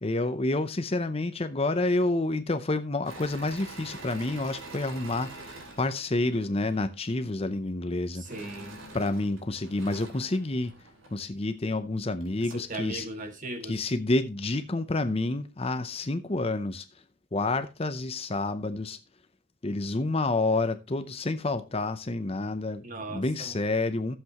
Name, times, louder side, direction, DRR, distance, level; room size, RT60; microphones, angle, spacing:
voice 1, 0.0-8.2 8.9-10.7 11.1-13.1 13.6-16.9 17.3-19.0 19.6-24.2, left 2 dB, 25° left, 0.6 m, -29 dB
Engine / Mechanisms, 3.0-6.8 8.2-11.2 11.8-11.9 12.2-12.8, right 2 dB, 65° right, 2.9 m, -46 dB
voice 2, 8.1-8.8 12.5-13.8 22.8-23.5, right 2 dB, 35° right, 1.9 m, -38 dB
14.5 x 7.8 x 3.0 m
head